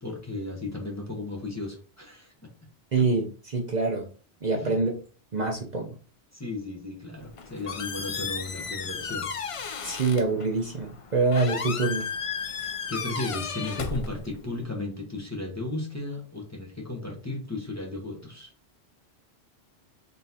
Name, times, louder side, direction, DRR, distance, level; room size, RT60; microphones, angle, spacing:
voice 1, 0.0-2.5 4.5-4.7 6.3-9.3 12.4-18.5, left 2 dB, 15° left, -1 dB, 1.0 m, -35 dB
voice 2, 2.9-4.1 4.4-4.9 5.3-5.9 9.8-12.1, right 3 dB, 45° right, 0 dB, 0.8 m, -25 dB
Squeak, 7.1-14.6, left 6 dB, 50° left, 0.4 m, -34 dB
3.9 x 3.7 x 2.8 m, 0.39 s
omnidirectional pair, 1.1 m